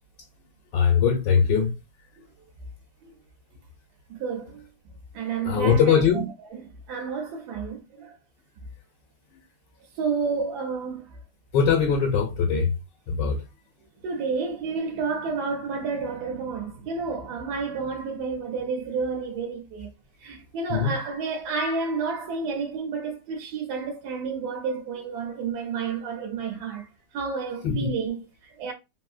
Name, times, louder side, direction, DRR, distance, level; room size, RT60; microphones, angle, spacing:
voice 1, 0.7-1.7 5.4-6.3 11.5-12.7 13.1-13.4 20.7-20.9 27.6-27.9, left 6 dB, 90° left, 1.4 m, -21 dB
voice 2, 4.1-4.6 5.1-8.2 9.9-11.2 14.0-19.9 20.2-28.7, right 5 dB, 70° right, 1.1 m, -30 dB
3.2 x 2.6 x 2.4 m
omnidirectional pair, 1.9 m